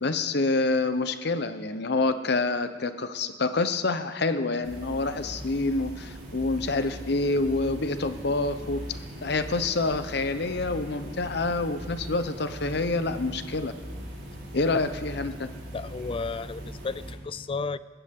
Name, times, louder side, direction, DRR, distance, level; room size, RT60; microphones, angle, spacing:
voice 1, 0.0-8.8 9.2-13.7 14.5-15.5, left 3 dB, 65° left, 0.9 m, -27 dB
sound 1, 4.6-17.1, equal, 85° right, 5.5 m, -40 dB
voice 2, 15.7-17.8, left 4 dB, 30° left, 0.4 m, -33 dB
20.5 x 15.0 x 3.7 m
head